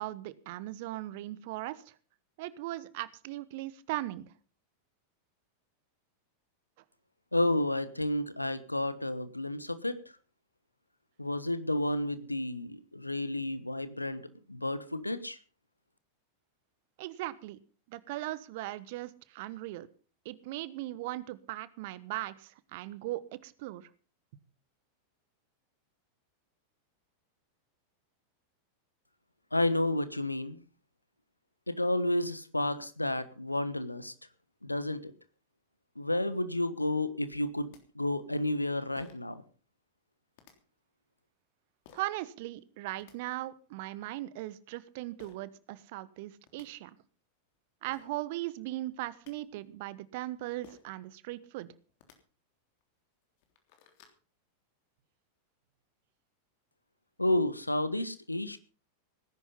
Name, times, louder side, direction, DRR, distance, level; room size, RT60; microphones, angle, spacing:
voice 1, 0.0-1.8 2.4-4.2 17.0-17.6 17.9-19.9 20.2-23.9 41.9-46.9 47.8-51.7, right 16 dB, 50° right, 17 dB, 1.1 m, -38 dB
voice 2, 7.3-10.0 11.2-14.2 14.5-15.4 29.5-30.6 31.7-34.1 34.6-35.1 36.0-39.4 57.2-58.6, left 1 dB, 85° left, 13 dB, 1.3 m, -31 dB
sound 1, 37.7-37.8 39.0-39.3 40.3-40.5 41.8-42.1 42.8-43.1 45.2-45.4 46.1-46.2 46.5-46.7 47.5-47.6 47.9-48.1 48.9-49.3 50.6-50.9 51.9-52.2 52.8-52.9 53.3-54.2, left 8 dB, 50° left, 3.3 m, -56 dB
18.0 x 10.5 x 5.6 m, 0.38 s
figure-of-eight pair, 90°, 0 cm